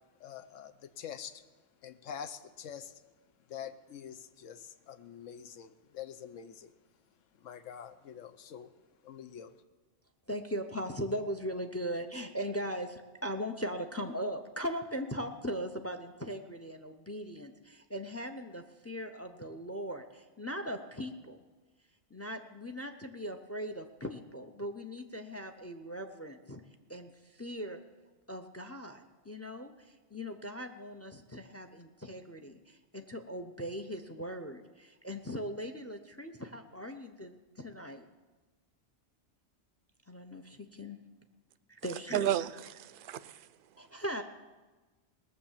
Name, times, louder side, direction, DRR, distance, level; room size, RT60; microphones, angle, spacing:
voice 1, 0.2-1.4 1.8-2.9 3.5-6.7 7.4-8.7 9.0-9.5, left 8 dB, 85° left, 12 dB, 1.1 m, -45 dB
voice 2, 10.3-21.4 22.1-27.8 28.3-38.1 40.1-41.0 41.7-42.3 43.8-44.2, equal, 20° left, 7 dB, 0.4 m, -39 dB
voice 3, 41.8-43.5, right 11 dB, 60° right, 15 dB, 0.6 m, -33 dB
19.0 x 6.7 x 7.3 m, 1.2 s
omnidirectional pair, 1.3 m